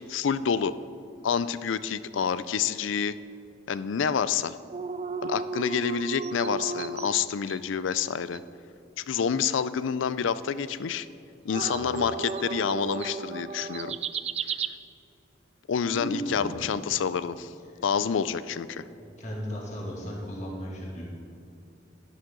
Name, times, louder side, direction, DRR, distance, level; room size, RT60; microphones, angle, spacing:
voice 1, 0.1-0.7 1.2-3.2 3.7-4.6 5.2-8.4 9.0-11.1 11.4-14.0 15.7-17.5 17.8-18.8, left 7 dB, 75° left, 15 dB, 0.4 m, -28 dB
sound 1, 4.7-7.6 7.9-8.0 8.3-8.4 11.5-14.7, right 5 dB, 30° right, 0.3 m, -34 dB
voice 2, 15.9-16.6 17.7-17.8 19.2-21.0, equal, 35° left, -4 dB, 2.2 m, -35 dB
11.5 x 11.0 x 3.8 m, 2.7 s
head